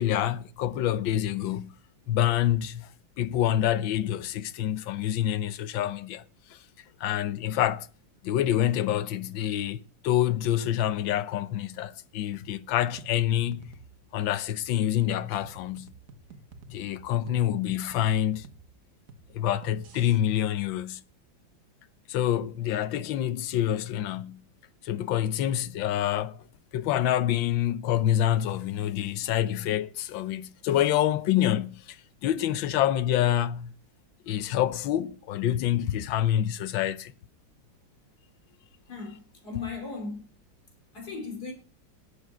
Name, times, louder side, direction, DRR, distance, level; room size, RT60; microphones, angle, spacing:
voice 1, 0.0-1.7 2.1-2.9 3.2-6.2 6.5-6.6 7.0-7.9 8.2-13.7 14.1-15.9 16.7-18.5 19.3-21.0 22.1-24.4 24.8-26.4 26.7-32.0 32.2-33.7 34.3-37.1, left 11 dB, 80° left, 1.5 m, -27 dB
sound 1, 12.3-20.2, right 3 dB, 50° right, 1.5 m, -51 dB
voice 2, 38.9-40.2 40.9-41.5, left 4 dB, 55° left, 3.8 m, -37 dB
11.0 x 8.4 x 6.2 m
omnidirectional pair, 2.1 m